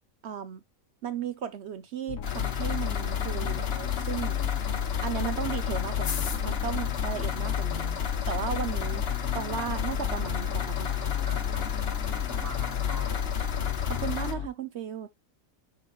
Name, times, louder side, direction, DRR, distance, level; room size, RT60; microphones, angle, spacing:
voice 1, 0.2-0.6 1.0-4.4 5.0-7.9 8.3-9.0 9.3-11.0 13.9-15.1, right 8 dB, 60° right, 0.8 m, -35 dB
sound 1, 2.1-14.5, left 8 dB, 75° left, 1.2 m, -36 dB
sound 2, 2.2-14.3, left 8 dB, 50° left, 1.1 m, -31 dB
voice 2, 11.2-13.3, right 2 dB, 20° left, 0.6 m, -45 dB
10.5 x 4.8 x 2.2 m
omnidirectional pair, 1.5 m